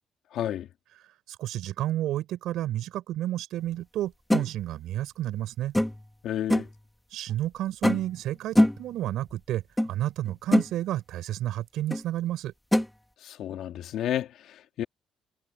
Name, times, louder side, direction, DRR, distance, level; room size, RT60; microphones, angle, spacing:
voice 1, 0.3-0.7 6.2-6.7 13.2-14.8, left 11 dB, 65° left, 2.1 m, -31 dB
voice 2, 1.3-5.7 7.1-9.6 9.9-12.5, right 13 dB, 75° right, 6.8 m, -31 dB
sound 1, 4.3-4.5 5.7-6.1 6.5-6.8 7.8-8.2 8.6-8.9 9.8-9.9 10.3-10.7 11.9-12.0 12.7-12.9, left 1 dB, 5° left, 1.9 m, -23 dB
cardioid pair, 180°, 0 cm